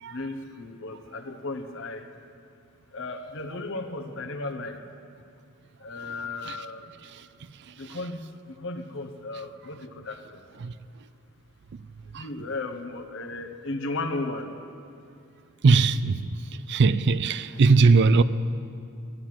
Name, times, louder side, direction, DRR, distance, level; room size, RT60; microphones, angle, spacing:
voice 1, 0.1-2.0 2.9-4.8 5.8-6.8 7.8-8.2 8.6-10.4 12.1-14.5, left 2 dB, 60° left, 1.0 m, -35 dB
voice 2, 15.6-16.4 16.7-18.2, right 4 dB, 50° right, 0.4 m, -20 dB
14.0 x 10.0 x 7.7 m
head